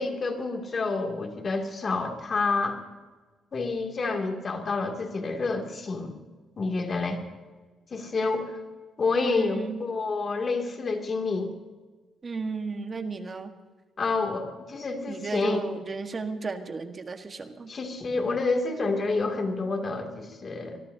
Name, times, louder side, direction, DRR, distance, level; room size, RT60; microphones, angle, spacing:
voice 1, 0.0-2.8 3.5-6.2 6.6-7.2 7.9-8.6 9.0-11.5 14.0-15.6 17.7-20.8, left 3 dB, 40° left, 3 dB, 2.5 m, -28 dB
voice 2, 9.2-9.8 12.2-13.5 15.1-17.7, right 4 dB, 35° right, 6 dB, 1.5 m, -34 dB
24.0 x 21.5 x 2.8 m, 1.4 s
cardioid pair, 90°, 0 cm